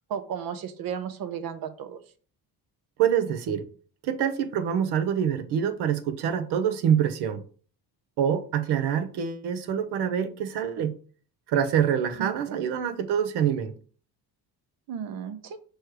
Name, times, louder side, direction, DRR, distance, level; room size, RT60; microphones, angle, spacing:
voice 1, 0.1-2.0 12.2-12.6 14.9-15.6, right 8 dB, 60° right, 0.8 m, -34 dB
voice 2, 3.0-3.6 4.0-7.4 8.2-10.9 11.5-13.7, right 8 dB, 85° right, 1.0 m, -25 dB
6.3 x 3.2 x 4.8 m
cardioid pair, 165°, 39 cm